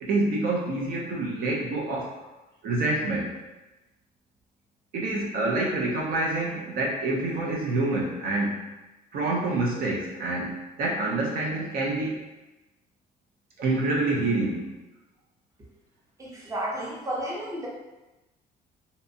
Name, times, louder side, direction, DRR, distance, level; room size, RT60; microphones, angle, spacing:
voice 1, 0.0-2.1 2.6-3.3 4.9-8.7 9.1-12.3 13.6-14.7, right 2 dB, 60° right, -2 dB, 0.5 m, -27 dB
voice 2, 16.2-17.7, right 1 dB, 20° right, -4 dB, 0.6 m, -32 dB
2.7 x 2.1 x 2.6 m, 1.1 s
cardioid pair, 110°, 17 cm